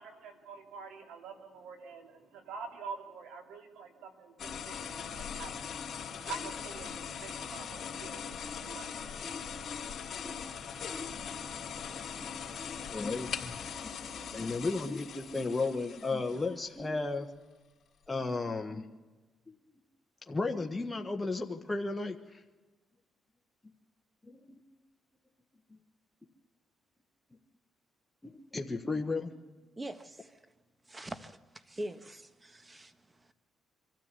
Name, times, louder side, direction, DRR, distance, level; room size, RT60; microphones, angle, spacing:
voice 1, 0.0-13.1 13.7-14.6, right 4 dB, 85° right, 5 dB, 2.7 m, -48 dB
sound 1, 4.4-16.7, left 7 dB, 60° left, 3.0 m, -41 dB
voice 2, 12.9-13.6 14.3-17.3 18.1-18.9 19.5-19.6 20.3-22.4 24.3-24.4 28.2-29.3, left 3 dB, 15° left, 3 dB, 1.4 m, -34 dB
voice 3, 29.8-30.4 30.9-33.3, right 1 dB, 20° right, 10 dB, 1.5 m, -43 dB
24.5 x 13.5 x 8.3 m, 1.2 s
cardioid pair, 90°, 0 cm